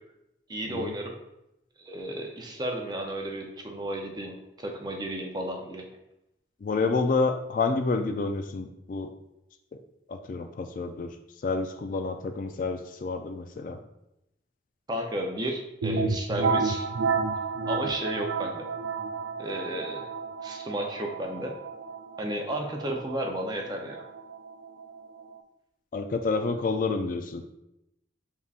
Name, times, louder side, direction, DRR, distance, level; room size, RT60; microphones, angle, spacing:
voice 1, 0.5-1.2 1.8-5.8 14.9-16.8 17.7-18.7 19.4-20.1 20.4-21.5 22.2-24.0, right 1 dB, 20° right, 1 dB, 0.6 m, -33 dB
voice 2, 6.6-9.1 10.1-11.1 11.4-13.8 25.9-27.4, left 4 dB, 45° left, 7 dB, 0.3 m, -29 dB
sound 1, 15.8-25.4, right 4 dB, 80° right, 0.4 m, -31 dB
5.4 x 3.6 x 2.4 m, 0.85 s
head